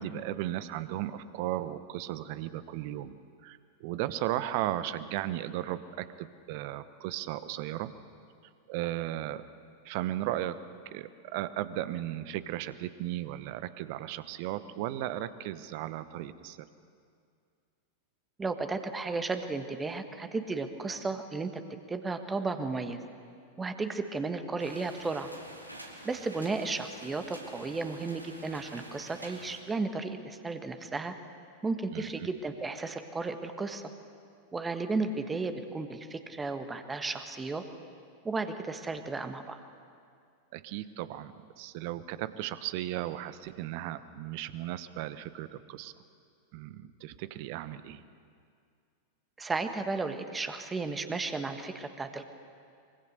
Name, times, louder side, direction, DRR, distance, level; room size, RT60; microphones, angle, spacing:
voice 1, 0.0-3.2 3.4-7.9 8.7-9.4 9.8-10.6 10.8-16.7 31.9-32.3 40.5-45.9 46.5-48.0, right 13 dB, 45° right, 14 dB, 1.0 m, -36 dB
voice 2, 18.4-21.5 21.9-23.0 23.6-25.3 26.0-31.1 31.6-33.8 34.5-37.6 38.2-39.6 49.4-52.3, right 3 dB, 15° right, 8 dB, 1.6 m, -34 dB
sound 1, 24.6-29.6, right 1 dB, 90° right, 2.4 m, -48 dB
24.5 x 23.5 x 6.7 m, 2.2 s
figure-of-eight pair, 90°, 0 cm